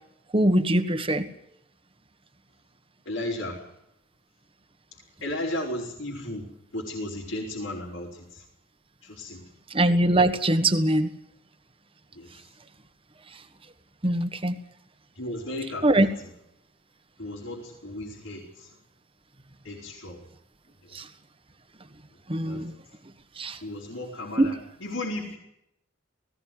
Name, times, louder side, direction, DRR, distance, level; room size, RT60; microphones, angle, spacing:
voice 1, 0.3-1.2 9.7-11.1 14.0-14.5 15.8-16.1 20.9-21.0 22.3-22.7 23.4-23.6 24.4-24.5, right 1 dB, 25° right, 9 dB, 1.5 m, -22 dB
voice 2, 3.0-3.7 5.2-8.4 9.0-9.5 12.1-12.5 15.1-16.3 17.2-18.8 19.6-20.2 20.8-21.0 22.4-22.7 23.6-25.4, left 1 dB, 75° left, -3 dB, 4.7 m, -35 dB
19.5 x 17.0 x 9.4 m, 0.80 s
head